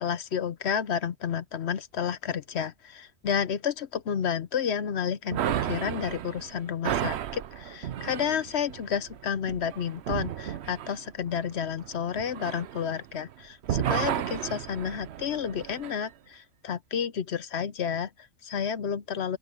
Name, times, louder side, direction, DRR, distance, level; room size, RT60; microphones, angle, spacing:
voice 1, 0.0-19.4, left 7 dB, 60° left, 0.9 m, -31 dB
sound 1, 5.3-13.3 13.6-16.0, right 10 dB, 60° right, 0.8 m, -33 dB
open air
omnidirectional pair, 1.4 m